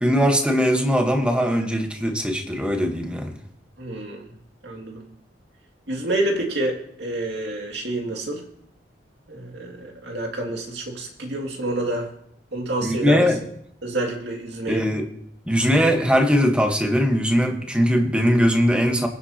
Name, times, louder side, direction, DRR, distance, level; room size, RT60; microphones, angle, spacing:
voice 1, 0.0-3.3 12.8-13.4 14.7-15.1 15.5-19.1, equal, 5° right, 1.3 m, -20 dB
voice 2, 3.8-4.3 4.6-5.0 5.9-8.4 9.3-12.1 12.5-13.3 13.8-14.9, right 2 dB, 65° right, 2.4 m, -28 dB
23.0 x 7.9 x 2.9 m
head